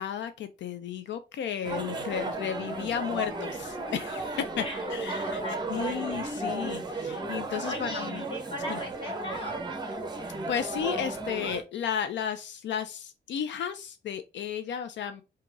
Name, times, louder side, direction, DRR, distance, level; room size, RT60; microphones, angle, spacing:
voice 1, 0.0-5.4 5.7-8.2 8.7-8.8 10.5-15.2, left 8 dB, 80° left, 0.4 m, -33 dB
sound 1, 1.6-11.6, right 2 dB, 25° right, 0.7 m, -34 dB
voice 2, 2.0-3.4 4.6-6.3 7.5-9.8, left 1 dB, 30° left, 1.5 m, -40 dB
3.8 x 2.8 x 4.5 m
wide cardioid pair, 165°, 18 cm